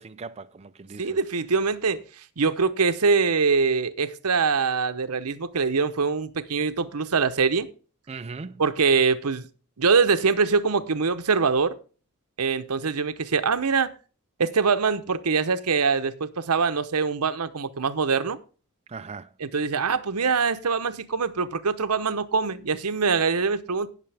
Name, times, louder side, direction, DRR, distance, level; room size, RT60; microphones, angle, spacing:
voice 1, 0.0-1.2 8.1-8.7 18.9-19.3, right 4 dB, 30° right, 0.4 m, -39 dB
voice 2, 1.0-2.0 2.4-7.7 8.6-9.5 9.8-11.8 12.4-13.9 14.4-18.4 19.4-23.9, right 5 dB, 85° right, 0.9 m, -23 dB
17.5 x 6.7 x 3.4 m
head